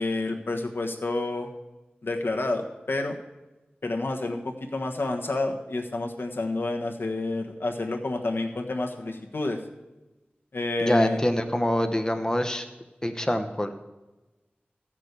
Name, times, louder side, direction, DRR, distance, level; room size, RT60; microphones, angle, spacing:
voice 1, 0.0-1.5 2.0-3.2 3.8-9.6 10.5-11.2, left 2 dB, 70° left, 3 dB, 1.3 m, -29 dB
voice 2, 10.8-12.6 13.0-13.7, equal, 15° left, 7 dB, 1.0 m, -25 dB
15.0 x 6.1 x 8.2 m, 1.1 s
wide cardioid pair, 50°, 4 cm